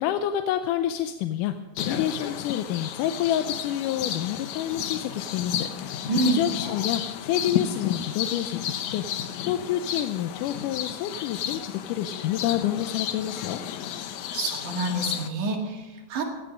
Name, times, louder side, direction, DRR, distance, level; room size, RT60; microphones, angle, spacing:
voice 1, 0.0-13.6, left 11 dB, 90° left, 8 dB, 2.2 m, -28 dB
sound 1, 1.8-15.3, left 10 dB, 75° left, 2.1 m, -32 dB
voice 2, 6.1-6.4 14.3-16.2, right 3 dB, 75° right, 1 dB, 3.6 m, -27 dB
16.0 x 11.5 x 5.2 m, 1.2 s
omnidirectional pair, 3.6 m